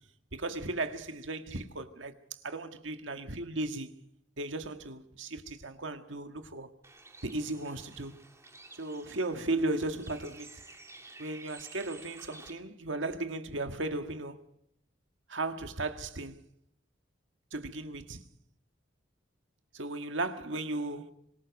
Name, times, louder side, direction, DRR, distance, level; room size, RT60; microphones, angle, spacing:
voice 1, 0.3-2.1 2.4-3.9 4.4-6.7 7.2-8.2 8.8-10.6 11.2-14.4 15.3-16.4 17.5-18.3 19.7-21.1, right 2 dB, 75° right, 1.8 m, -36 dB
Bird, 6.8-12.5, right 3 dB, 15° right, 2.5 m, -52 dB
26.0 x 20.5 x 5.3 m
head